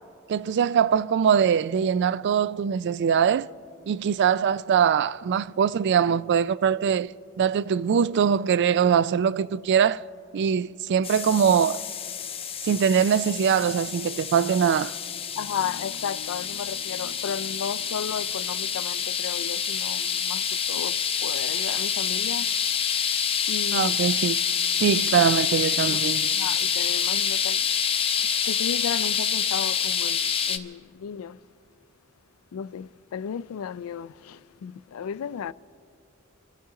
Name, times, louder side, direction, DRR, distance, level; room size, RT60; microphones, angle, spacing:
voice 1, 0.3-3.5 3.9-7.1 7.4-10.1 10.3-11.8 12.6-14.9 23.7-24.4 24.8-26.3, right 7 dB, 55° right, 0.3 m, -22 dB
sound 1, 11.0-30.6, left 7 dB, 25° left, 0.7 m, -27 dB
voice 2, 15.3-22.6 23.5-23.9 24.9-25.0 25.9-26.0 26.3-27.7 28.2-31.4 32.5-35.5, left 7 dB, 85° left, 0.4 m, -34 dB
27.5 x 13.0 x 3.7 m
head